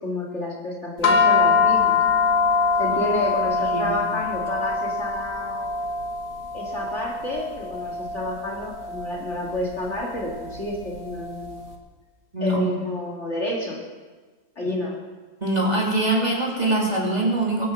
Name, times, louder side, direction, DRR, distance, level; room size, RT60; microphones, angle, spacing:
voice 1, 0.0-2.0 2.8-5.7 6.5-11.8 12.4-13.8 14.6-15.0, left 1 dB, 40° left, -2 dB, 2.4 m, -30 dB
sound 1, 1.0-11.5, left 4 dB, 80° left, 2.2 m, -24 dB
voice 2, 12.3-12.7 14.6-14.7 15.4-17.7, right 1 dB, 20° right, -4 dB, 2.8 m, -23 dB
22.5 x 8.5 x 6.2 m, 1.4 s
omnidirectional pair, 2.0 m